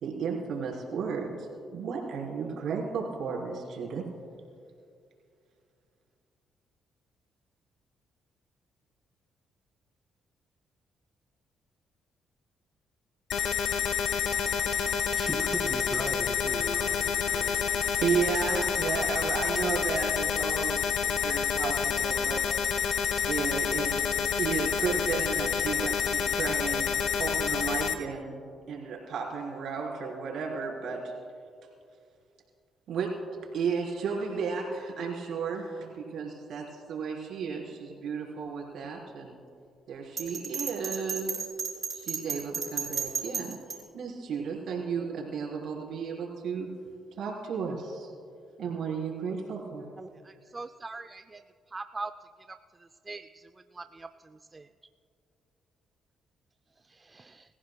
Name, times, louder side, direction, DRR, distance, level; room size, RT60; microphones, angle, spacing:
voice 1, 0.0-4.1 17.5-20.8 21.1-22.4 23.2-24.0 24.4-31.1 32.9-33.1 33.5-39.4 39.9-41.5 41.9-46.7 47.2-48.1 48.6-49.9, right 5 dB, 75° right, 3.8 m, -33 dB
sound 1, 13.3-27.9, left 7 dB, 80° left, 0.9 m, -28 dB
voice 2, 15.1-17.5, equal, ahead, 2.0 m, -37 dB
Bell, 40.2-43.8, right 6 dB, 50° right, 4.2 m, -33 dB
voice 3, 50.5-51.4 51.7-52.1 53.1-53.2 53.8-54.1 54.5-54.6 57.1-57.4, right 3 dB, 25° right, 0.4 m, -40 dB
26.0 x 15.0 x 2.2 m
cardioid pair, 90°, 0 cm